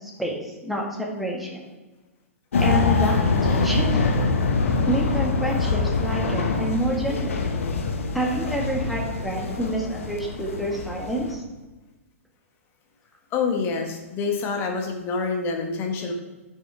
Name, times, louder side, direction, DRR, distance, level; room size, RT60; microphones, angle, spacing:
voice 1, 0.0-1.6 2.6-3.9 4.8-7.4 8.1-11.4, right 1 dB, ahead, -2 dB, 1.7 m, -28 dB
sound 1, 2.5-11.3, left 3 dB, 65° left, 1.3 m, -24 dB
voice 2, 13.3-16.1, left 4 dB, 30° left, 2 dB, 1.5 m, -27 dB
9.6 x 6.4 x 3.5 m, 1.2 s
figure-of-eight pair, 110°, 8 cm